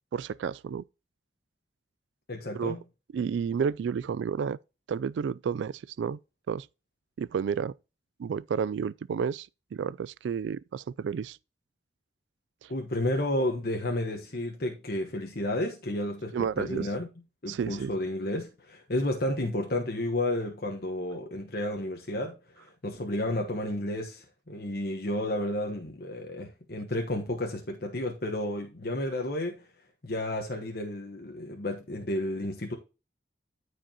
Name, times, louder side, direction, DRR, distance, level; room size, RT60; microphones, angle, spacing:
voice 1, 0.1-0.8 2.5-2.8 3.1-4.6 4.9-6.2 6.5-6.7 7.2-7.7 8.2-11.4 12.6-12.7 16.3-16.9 17.5-17.9, right 6 dB, 75° right, 0.3 m, -31 dB
voice 2, 2.3-2.8 12.7-17.1 17.4-29.6 30.0-32.8, left 1 dB, 55° left, 1.2 m, -32 dB
13.5 x 4.9 x 2.9 m
head